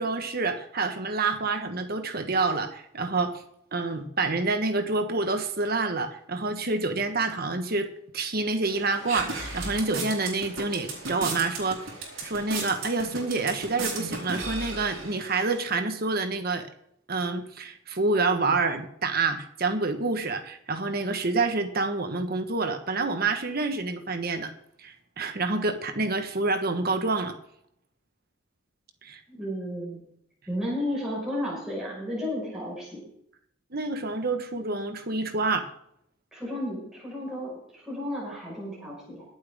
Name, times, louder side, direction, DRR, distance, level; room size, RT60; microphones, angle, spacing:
voice 1, 0.0-3.4 3.7-7.9 8.1-11.8 12.2-16.7 17.1-24.5 24.8-27.3 29.0-29.2 33.7-35.7, right 3 dB, 50° right, 7 dB, 1.4 m, -27 dB
sound 1, 8.7-15.6, right 3 dB, 90° right, 4.1 m, -36 dB
voice 2, 29.3-30.0 30.5-33.0 36.3-39.2, left 1 dB, 5° right, -6 dB, 5.4 m, -33 dB
22.5 x 8.0 x 3.7 m, 0.72 s
head